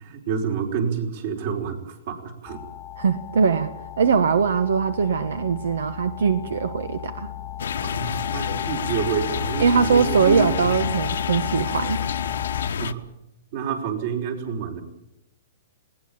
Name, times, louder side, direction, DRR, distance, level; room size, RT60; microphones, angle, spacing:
voice 1, 0.0-2.6 7.8-10.7 12.8-13.0 13.5-14.8, right 6 dB, 50° right, 4 dB, 5.0 m, -28 dB
sound 1, 2.5-12.7, left 12 dB, 20° left, 0.8 m, -34 dB
voice 2, 3.0-7.3 9.6-12.0, right 6 dB, 85° right, 12 dB, 1.3 m, -21 dB
sound 2, 7.6-12.9, left 7 dB, 85° left, 1.2 m, -29 dB
20.5 x 18.5 x 8.7 m, 0.84 s
hypercardioid pair, 155°, 0 cm